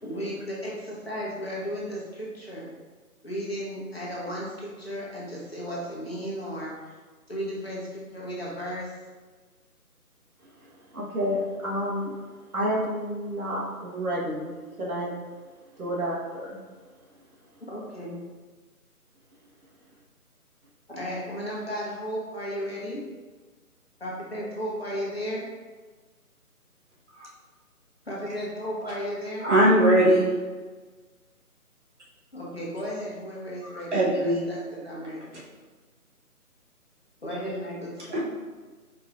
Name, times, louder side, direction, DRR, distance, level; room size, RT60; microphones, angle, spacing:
voice 1, 0.0-2.7 3.2-6.7 7.3-8.9 17.7-18.2 20.9-23.0 24.0-25.5 28.1-29.5 32.3-35.2 37.2-38.2, equal, 40° left, -5 dB, 0.9 m, -34 dB
voice 2, 10.6-12.1 12.5-15.1 15.8-16.6, equal, 65° right, -6 dB, 1.4 m, -30 dB
voice 3, 29.4-30.3 33.6-34.5 38.1-38.2, right 1 dB, 50° right, -6 dB, 1.1 m, -21 dB
4.6 x 3.0 x 2.4 m, 1.4 s
figure-of-eight pair, 155°, 45 cm